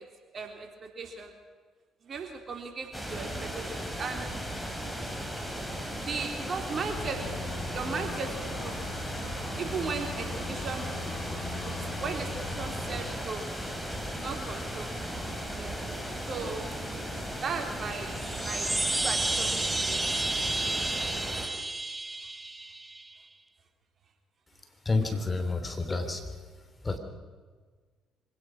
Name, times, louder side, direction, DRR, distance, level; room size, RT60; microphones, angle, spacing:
voice 1, 0.3-0.7 1.0-1.3 2.0-4.3 6.0-7.4 7.7-8.8 9.6-11.0 11.6-11.7 12.0-12.3 12.6-13.4 14.2-14.9 15.6-15.7 16.3-16.7 17.4-20.0 20.7-20.9, right 5 dB, 45° right, 4 dB, 3.9 m, -37 dB
sound 1, 2.9-21.5, equal, 5° left, 4.4 m, -36 dB
sound 2, 6.6-13.1, left 4 dB, 50° left, 7.9 m, -41 dB
sound 3, 18.1-23.1, right 2 dB, 20° right, 0.7 m, -31 dB
voice 2, 24.8-26.3 26.8-27.0, left 3 dB, 25° left, 7 dB, 3.2 m, -29 dB
25.0 x 17.5 x 6.3 m, 1.5 s
hypercardioid pair, 55°, 0 cm